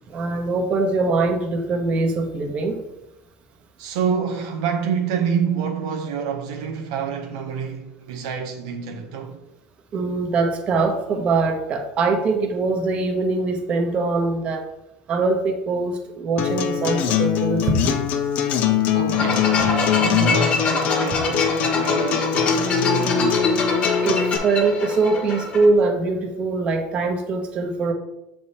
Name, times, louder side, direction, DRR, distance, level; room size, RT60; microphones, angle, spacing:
voice 1, 0.1-2.8 9.9-14.6 15.1-18.0 19.6-19.7 24.0-27.9, right 3 dB, 40° right, 1.0 m, -22 dB
voice 2, 3.8-9.4 18.9-23.6, right 7 dB, 80° right, 0.7 m, -27 dB
Acoustic guitar, 16.4-24.4, left 9 dB, 55° left, 0.6 m, -22 dB
sound 1, 19.1-25.7, left 4 dB, 40° left, 1.2 m, -24 dB
6.8 x 3.4 x 4.2 m
supercardioid pair, 115°, 3 cm